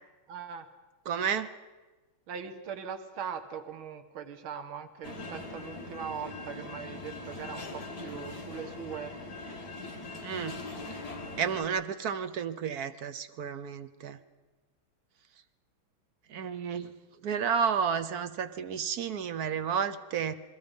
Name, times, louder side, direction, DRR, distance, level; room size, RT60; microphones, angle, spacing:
voice 1, 0.3-0.7 2.3-9.1, right 7 dB, 70° right, 7 dB, 2.1 m, -40 dB
voice 2, 1.0-1.5 10.2-10.6 11.4-14.2 16.3-16.9 17.2-20.3, right 7 dB, 55° right, 11 dB, 1.2 m, -31 dB
sound 1, 5.0-11.6, left 2 dB, 45° left, 2.6 m, -41 dB
29.5 x 21.5 x 5.3 m, 1.2 s
omnidirectional pair, 2.4 m